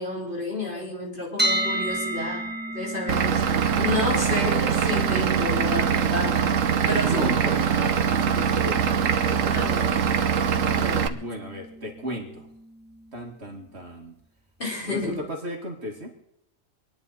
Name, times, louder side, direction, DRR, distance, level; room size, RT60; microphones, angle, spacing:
voice 1, 0.0-2.5 2.7-6.6 6.8-7.3 7.8-8.0 9.5-10.0 10.8-11.1 14.6-15.2, left 2 dB, 40° left, -4 dB, 4.7 m, -30 dB
sound 1, 1.4-13.3, right 1 dB, 10° right, 1.0 m, -34 dB
Vehicle / Engine, 3.1-11.1, right 7 dB, 75° right, 1.2 m, -23 dB
voice 2, 7.0-9.8 11.1-12.5 13.1-14.1 14.8-16.1, equal, 55° right, 2 dB, 2.4 m, -35 dB
26.5 x 10.5 x 4.1 m, 0.77 s
omnidirectional pair, 1.4 m